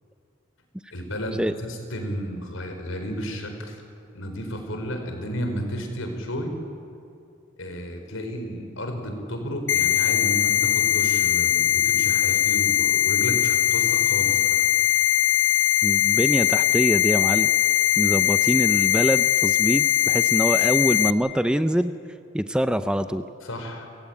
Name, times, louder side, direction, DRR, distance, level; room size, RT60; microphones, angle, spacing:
voice 1, 0.9-3.8 4.1-6.5 7.6-14.6 23.4-23.9, equal, 80° left, 5 dB, 4.4 m, -32 dB
sound 1, 9.7-21.1, left 13 dB, 60° left, 0.6 m, -20 dB
voice 2, 15.8-17.5 18.0-21.9 22.3-23.2, equal, 5° right, 11 dB, 0.5 m, -24 dB
29.5 x 16.0 x 9.1 m, 2.5 s
head